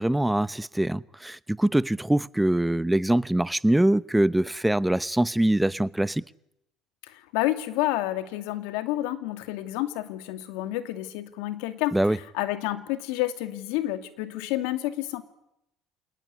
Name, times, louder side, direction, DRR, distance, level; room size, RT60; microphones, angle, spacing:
voice 1, 0.0-6.2 11.9-12.2, right 1 dB, 5° right, 0.9 m, -23 dB
voice 2, 7.1-15.2, left 15 dB, 80° left, 2.6 m, -29 dB
28.0 x 19.5 x 9.8 m
supercardioid pair, 85°, 0 cm